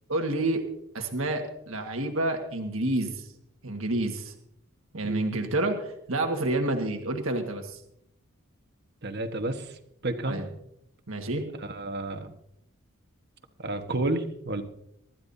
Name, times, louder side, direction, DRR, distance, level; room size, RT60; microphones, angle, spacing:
voice 1, 0.1-0.6 0.9-3.3 3.6-4.3 4.9-7.8 10.2-10.4 11.1-11.4, right 2 dB, 70° right, 3 dB, 1.7 m, -29 dB
voice 2, 9.0-10.4 11.6-12.3 13.6-14.6, right 2 dB, 50° right, 7 dB, 1.3 m, -31 dB
24.0 x 12.5 x 2.7 m, 0.76 s
head